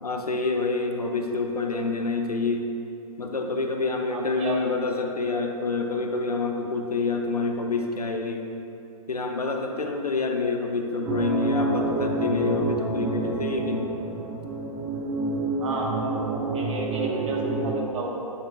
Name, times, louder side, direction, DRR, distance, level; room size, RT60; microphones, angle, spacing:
voice 1, 0.0-2.7 3.2-8.5 9.1-13.9, left 3 dB, 85° left, 3 dB, 0.8 m, -27 dB
voice 2, 4.1-4.6 15.6-18.2, right 1 dB, 55° right, -2 dB, 1.4 m, -32 dB
sound 1, 11.0-17.8, right 2 dB, 15° right, 0.5 m, -28 dB
9.3 x 4.3 x 3.5 m, 2.8 s
figure-of-eight pair, 120°, 19 cm